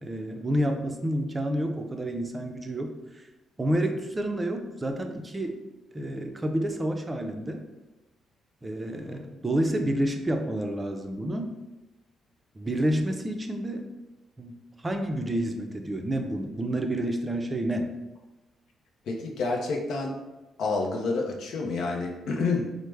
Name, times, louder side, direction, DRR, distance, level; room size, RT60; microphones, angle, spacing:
voice 1, 0.0-3.3 3.6-5.6 5.9-7.6 8.6-11.6 12.6-13.9 14.4-14.6 14.8-17.9, right 1 dB, 20° right, 4 dB, 0.4 m, -29 dB
voice 2, 19.1-20.2 20.6-22.7, left 3 dB, 75° left, 0 dB, 0.5 m, -28 dB
3.1 x 2.0 x 3.3 m, 1.1 s
cardioid pair, 75°, 0 cm